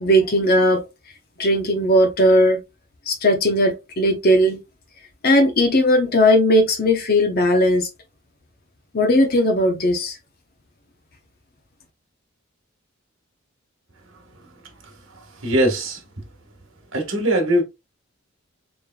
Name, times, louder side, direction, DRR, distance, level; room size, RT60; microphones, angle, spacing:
voice 1, 0.0-0.8 1.4-2.6 3.1-4.6 5.2-7.9 8.9-10.1, equal, 50° left, 0.9 m, -17 dB
voice 2, 15.1-16.0 16.9-17.6, right 1 dB, 65° right, 1.5 m, -21 dB
4.3 x 3.3 x 2.3 m
head